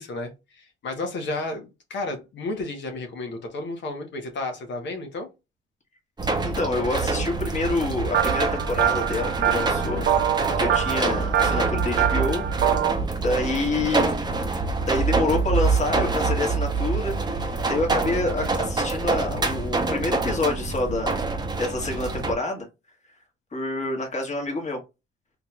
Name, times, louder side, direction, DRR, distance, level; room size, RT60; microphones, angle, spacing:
voice 1, 0.0-5.3, left 2 dB, 65° left, 1.2 m, -32 dB
sound 1, 6.2-22.3, right 3 dB, 20° right, 0.8 m, -26 dB
voice 2, 6.4-10.1 10.6-12.4 13.2-14.1 14.9-21.2 21.6-22.7 23.5-24.8, left 2 dB, 35° left, 1.6 m, -27 dB
sound 2, 8.1-12.9, right 10 dB, 55° right, 0.6 m, -24 dB
3.7 x 3.0 x 2.3 m
cardioid pair, 90°, 20 cm